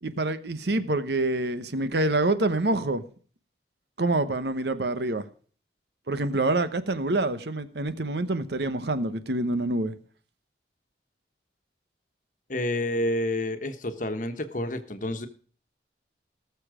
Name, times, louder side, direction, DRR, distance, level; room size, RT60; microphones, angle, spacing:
voice 1, 0.0-3.0 4.0-5.2 6.1-9.9, right 2 dB, 65° right, 1.0 m, -26 dB
voice 2, 12.5-15.3, left 1 dB, 45° left, 1.3 m, -29 dB
18.5 x 7.0 x 5.0 m
head